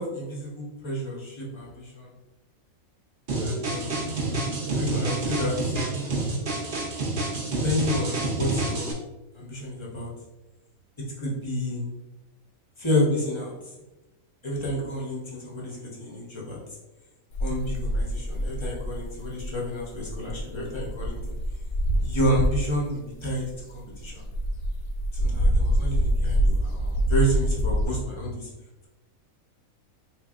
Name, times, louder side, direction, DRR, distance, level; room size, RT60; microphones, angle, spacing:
voice 1, 0.0-2.1 3.4-4.4 4.7-5.6 7.5-9.0 9.3-10.1 11.2-11.9 12.8-13.5 14.4-16.6 17.4-21.3 22.0-24.3 25.1-28.5, equal, 25° left, -4 dB, 0.7 m, -30 dB
sound 1, 3.3-8.9, right 2 dB, 45° right, 0.7 m, -29 dB
sound 2, 3.3-6.8, right 5 dB, 85° right, 1.1 m, -35 dB
sound 3, 17.3-22.8 23.3-27.9, equal, 75° left, 1.1 m, -26 dB
3.7 x 3.3 x 2.4 m, 1.0 s
omnidirectional pair, 1.5 m